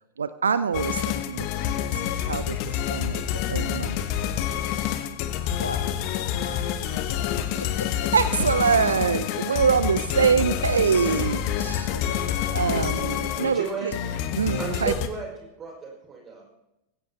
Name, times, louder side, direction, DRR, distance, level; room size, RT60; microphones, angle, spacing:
voice 1, 0.2-1.5 1.9-4.1 8.1-12.1 12.5-13.9 14.4-14.9, right 6 dB, 70° right, 15 dB, 0.4 m, -25 dB
sound 1, 0.7-15.1, left 10 dB, 45° left, 1.1 m, -28 dB
voice 2, 5.6-7.2 7.5-8.1 11.8-12.4, left 3 dB, 80° left, 10 dB, 1.1 m, -39 dB
voice 3, 13.4-13.9 14.6-15.3 15.6-16.6, right 4 dB, 25° right, 1 dB, 5.4 m, -33 dB
20.5 x 16.0 x 2.9 m, 0.91 s
figure-of-eight pair, 90°, 0 cm